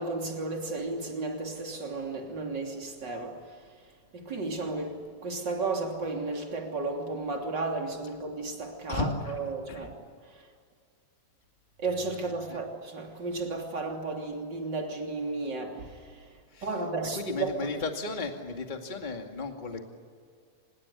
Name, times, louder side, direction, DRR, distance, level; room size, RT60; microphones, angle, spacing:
voice 1, 0.0-3.4 4.1-10.0 10.3-10.5 11.8-16.2 16.6-17.7, right 3 dB, 35° right, 3.5 m, -33 dB
voice 2, 8.9-9.4 9.7-9.9 12.5-12.6 16.5-16.7 17.1-19.8, left 3 dB, 15° left, 1.9 m, -34 dB
25.5 x 21.5 x 9.8 m
omnidirectional pair, 3.7 m